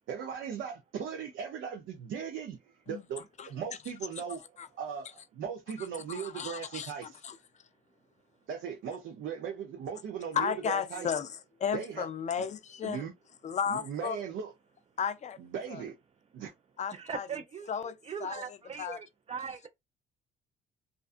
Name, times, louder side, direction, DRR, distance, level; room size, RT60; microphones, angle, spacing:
voice 1, 0.1-2.6 2.9-4.4 4.7-7.2 8.5-11.1 11.7-12.1 12.4-12.5 12.8-13.1 13.7-14.5 15.4-15.9 16.3-16.5, right 7 dB, 75° right, 0.6 m, -38 dB
voice 2, 6.1-6.9 7.2-7.3 10.3-11.3 11.6-13.0 13.4-14.2 15.0-15.4 15.7-15.8 16.8-17.3 17.7-17.9 18.2-18.4 18.8-19.0, left 7 dB, 35° left, 0.4 m, -33 dB
voice 3, 16.9-19.7, right 7 dB, 30° right, 0.4 m, -40 dB
2.5 x 2.3 x 2.4 m
cardioid pair, 90°, 20 cm